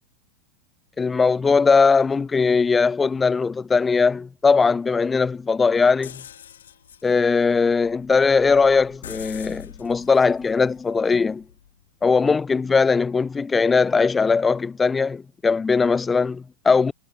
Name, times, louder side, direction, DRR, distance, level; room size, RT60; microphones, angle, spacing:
voice 1, 1.0-6.2 7.0-11.4 12.0-16.9, left 4 dB, 15° left, 0.4 m, -20 dB
sound 1, 6.0-11.8, left 9 dB, 75° left, 3.0 m, -44 dB
hypercardioid pair, 90°, 0 cm